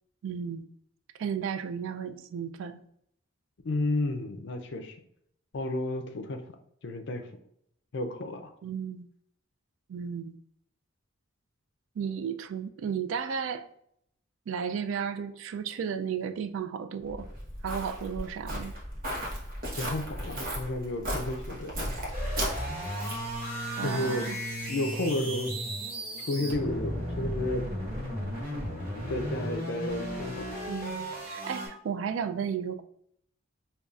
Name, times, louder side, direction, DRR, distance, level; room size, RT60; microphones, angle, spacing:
voice 1, 0.2-0.7 1.2-2.8 8.6-9.1 9.9-10.4 12.0-13.7 14.5-17.3 17.6-18.7 23.8-24.4 30.7-32.8, right 7 dB, 70° right, 0.3 m, -34 dB
voice 2, 3.6-5.0 5.5-6.4 6.8-7.3 7.9-8.5 19.8-22.0 23.8-24.3 24.7-25.5 26.3-27.7 29.1-30.5, left 1 dB, 60° left, 0.5 m, -32 dB
Walk footsteps, 17.1-23.3, equal, 45° right, 1.0 m, -36 dB
sound 1, 22.1-31.7, equal, 30° right, 1.4 m, -34 dB
5.2 x 2.3 x 2.4 m
head